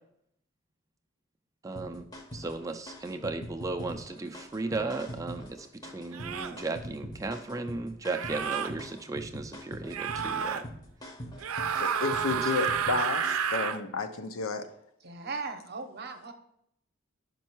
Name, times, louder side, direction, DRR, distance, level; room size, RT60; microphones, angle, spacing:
voice 1, 1.6-2.1 2.3-10.6, right 3 dB, 15° right, 6 dB, 0.4 m, -35 dB
sound 1, 1.8-13.6, equal, 20° left, 0.7 m, -43 dB
sound 2, 4.7-4.9 6.1-6.6 8.0-8.7 9.9-10.6 11.4-13.8, right 7 dB, 90° right, 0.5 m, -31 dB
voice 2, 11.8-14.7, left 4 dB, 80° left, 8 dB, 0.7 m, -31 dB
voice 3, 15.0-16.3, right 4 dB, 50° right, 6 dB, 0.8 m, -38 dB
5.5 x 5.3 x 4.5 m, 0.74 s
head